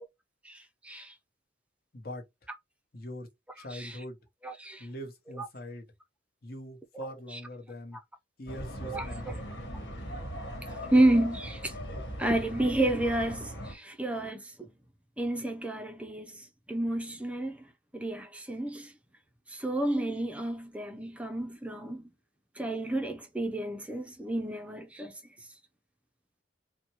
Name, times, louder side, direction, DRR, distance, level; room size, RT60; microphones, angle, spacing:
voice 1, 0.4-1.1 3.7-4.0 4.4-4.9 5.3-5.5 6.9-7.4 8.8-9.3 10.9-11.7 12.2-14.7 15.2-17.7 17.9-18.9 19.5-22.1 22.6-25.2, right 1 dB, 5° right, 0.4 m, -30 dB
voice 2, 1.9-2.2 2.9-3.3 3.6-4.2 4.8-5.9 6.4-8.0 8.4-9.5, left 1 dB, 55° left, 0.9 m, -42 dB
sound 1, 8.5-13.7, equal, 75° left, 1.3 m, -39 dB
4.3 x 2.1 x 2.8 m
head